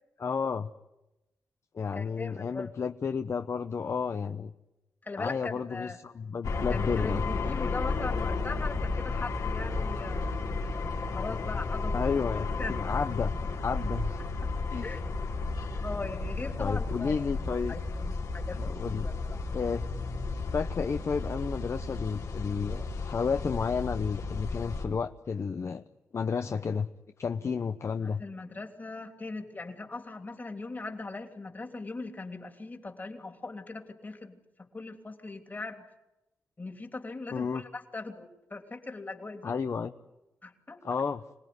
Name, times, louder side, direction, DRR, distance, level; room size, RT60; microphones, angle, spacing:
voice 1, 0.2-0.7 1.7-4.5 5.2-7.2 11.9-13.3 13.6-14.2 14.7-14.9 16.6-17.8 18.5-19.1 19.5-19.9 20.5-25.8 26.1-26.9 27.2-28.2 37.3-37.6 39.4-39.9 40.8-41.2, left 5 dB, 50° left, 9 dB, 0.8 m, -31 dB
voice 2, 1.9-2.7 5.0-6.0 6.7-10.5 11.1-12.1 12.6-12.8 14.8-15.0 15.8-19.4 28.0-35.8 36.6-39.6 40.4-40.8, left 3 dB, 30° left, 5 dB, 3.1 m, -40 dB
sound 1, 6.4-24.8, left 3 dB, 85° left, 3.8 m, -33 dB
26.0 x 18.5 x 9.6 m, 0.98 s
cardioid pair, 85°, 6 cm